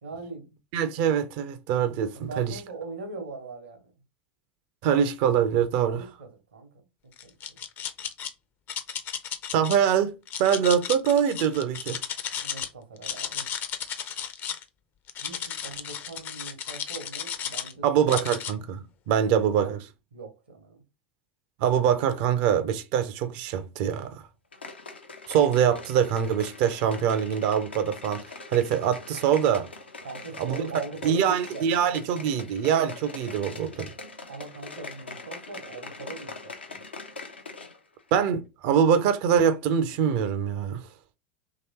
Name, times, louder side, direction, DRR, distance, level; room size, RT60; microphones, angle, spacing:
voice 1, 0.0-0.6 2.1-3.8 5.8-6.8 7.2-7.6 12.4-13.5 15.2-17.8 18.1-18.2 19.1-19.8 20.1-20.8 30.0-31.9 34.3-36.8, right 3 dB, 75° right, 1.0 m, -41 dB
voice 2, 0.7-2.5 4.8-6.0 9.5-12.0 17.8-19.8 21.6-24.2 25.3-28.2 28.5-29.7 30.4-30.6 31.0-33.9 38.1-40.8, right 8 dB, 50° right, 0.5 m, -24 dB
sound 1, 7.2-8.3 8.7-9.8 10.3-12.7 13.0-14.6 15.1-17.7 18.1-18.5, left 9 dB, 35° left, 0.5 m, -34 dB
sound 2, 24.5-37.8 38.1-38.2, left 3 dB, 80° left, 0.6 m, -42 dB
3.0 x 2.9 x 2.8 m
figure-of-eight pair, 80°, 6 cm